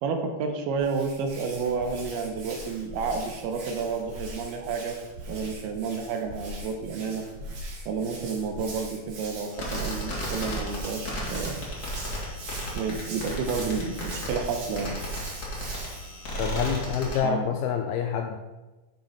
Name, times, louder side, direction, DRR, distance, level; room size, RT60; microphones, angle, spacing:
voice 1, 0.0-5.0 5.3-7.3 7.9-11.7 12.8-15.0 17.0-17.6, right 5 dB, 80° right, 4 dB, 2.5 m, -30 dB
Hands, 0.7-16.2, right 2 dB, 55° right, 2.0 m, -41 dB
sound 1, 9.5-17.2, equal, 45° left, 1.0 m, -34 dB
voice 2, 16.4-18.4, left 8 dB, 85° left, 4 dB, 2.3 m, -27 dB
9.1 x 5.4 x 5.6 m, 1.1 s
omnidirectional pair, 5.0 m